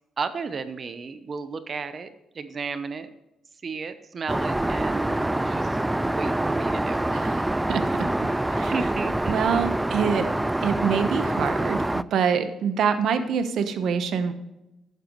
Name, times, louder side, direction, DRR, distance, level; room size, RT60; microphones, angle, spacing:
voice 1, 0.2-2.1 2.3-3.1 3.6-5.8 6.1-7.2 8.7-9.6, right 5 dB, 45° right, 11 dB, 0.8 m, -33 dB
Aircraft, 4.3-12.0, right 1 dB, 10° right, 0.3 m, -25 dB
voice 2, 9.3-14.3, right 7 dB, 70° right, 9 dB, 1.1 m, -25 dB
11.0 x 9.3 x 3.2 m, 0.94 s
cardioid pair, 90°, 0 cm